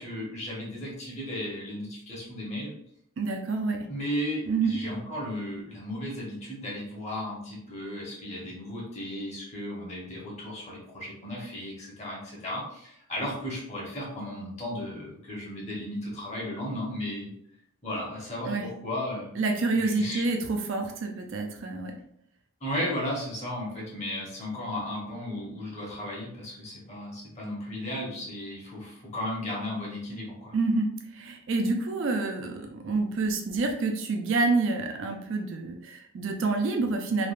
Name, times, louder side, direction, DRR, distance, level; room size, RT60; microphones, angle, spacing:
voice 1, 0.0-2.8 3.9-17.3 17.8-19.4 19.7-20.3 22.6-30.5, left 1 dB, 30° left, -4 dB, 0.9 m, -35 dB
voice 2, 3.2-3.9 4.5-4.8 18.4-18.7 19.4-22.0 30.5-37.3, right 3 dB, 55° right, 3 dB, 0.4 m, -28 dB
3.2 x 2.3 x 2.4 m, 0.70 s
head